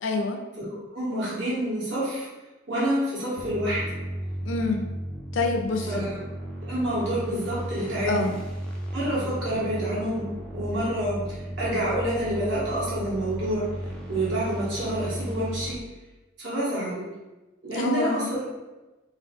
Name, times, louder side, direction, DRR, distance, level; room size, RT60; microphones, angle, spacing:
voice 1, 0.0-0.4 4.5-4.9 5.3-6.1 8.1-8.3 17.7-18.3, left 3 dB, 75° left, 4 dB, 0.4 m, -26 dB
voice 2, 0.6-2.3 2.7-3.9 5.9-6.2 6.6-8.3 8.9-10.3 10.5-13.7 14.1-15.8 16.4-17.0 17.6-18.4, right 1 dB, 70° right, -7 dB, 1.3 m, -28 dB
sound 1, 3.4-15.8, right 1 dB, 5° left, 0.3 m, -35 dB
2.9 x 2.4 x 3.4 m, 1.1 s
head